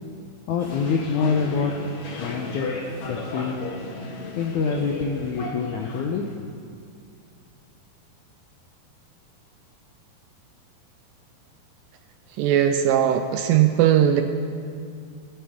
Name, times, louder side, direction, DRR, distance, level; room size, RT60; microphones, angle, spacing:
voice 1, 0.5-1.7 2.2-2.7 3.0-3.5 4.4-6.3, left 5 dB, 80° left, 2 dB, 1.7 m, -25 dB
sound 1, 0.6-6.3, left 2 dB, 55° left, 1.8 m, -35 dB
voice 2, 12.4-14.2, right 10 dB, 80° right, 7 dB, 2.1 m, -19 dB
21.0 x 10.0 x 3.6 m, 2.4 s
omnidirectional pair, 4.4 m